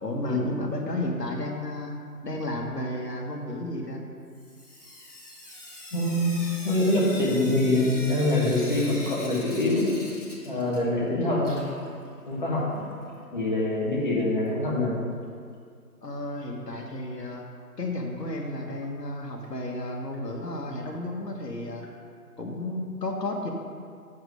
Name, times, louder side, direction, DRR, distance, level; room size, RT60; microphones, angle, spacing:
voice 1, 0.0-2.0 2.2-4.0 16.0-17.4 17.8-21.9 22.4-23.5, left 1 dB, 80° left, 1 dB, 1.6 m, -32 dB
Sink (filling or washing) / Drip, 4.3-11.1 11.3-13.3 14.5-14.6 14.9-15.0 15.2-15.3 18.2-18.3 18.8-18.9 19.4-19.5 20.1-20.2 20.9-21.0 21.8-21.9, left 1 dB, 50° left, 2.3 m, -43 dB
voice 2, 5.9-6.3 6.6-9.9 10.4-11.5 12.3-12.8 13.3-15.0, left 1 dB, 30° left, -5 dB, 1.6 m, -24 dB
7.9 x 6.4 x 4.8 m, 2.2 s
figure-of-eight pair, 165°, 48 cm